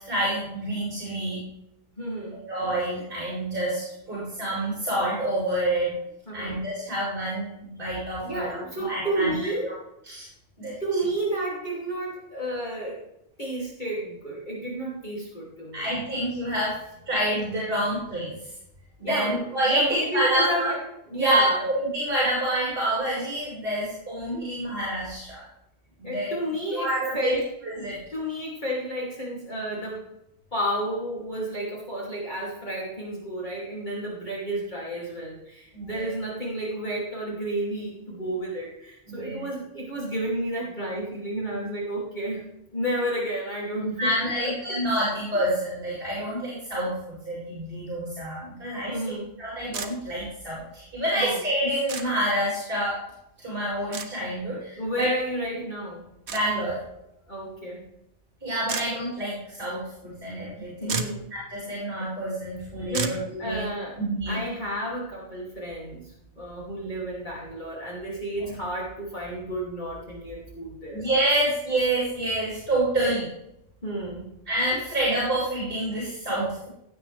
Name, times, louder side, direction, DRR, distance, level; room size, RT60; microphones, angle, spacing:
voice 1, 0.0-1.4 2.5-6.0 6.3-9.3 10.1-10.3 10.6-10.7 15.7-16.7 17.1-18.3 19.0-20.7 21.1-25.4 26.0-26.3 26.7-27.4 27.6-28.0 35.7-36.1 39.1-39.4 44.0-46.9 47.2-49.0 49.4-53.0 53.4-55.1 56.3-56.8 58.4-61.0 61.3-63.7 64.0-64.4 68.4-68.5 70.9-73.3 74.5-76.7, right 1 dB, 45° right, -7 dB, 4.9 m, -27 dB
voice 2, 2.0-2.4 6.3-6.6 8.2-9.8 10.6-13.0 13.4-15.9 19.0-20.8 21.1-21.6 26.0-27.5 28.1-30.1 30.5-42.4 42.7-44.5 48.9-49.3 51.2-51.4 54.8-56.1 57.3-57.8 60.8-61.3 62.9-64.0 64.3-71.1 73.8-74.3, right 1 dB, 40° left, -5 dB, 2.8 m, -31 dB
sound 1, 49.7-49.9 51.9-52.1 53.9-54.1 56.3-56.4 58.7-58.9 60.5-60.6 60.8-61.2 62.9-63.2, right 5 dB, 60° right, 1.2 m, -30 dB
16.5 x 7.6 x 3.3 m, 0.81 s
omnidirectional pair, 1.3 m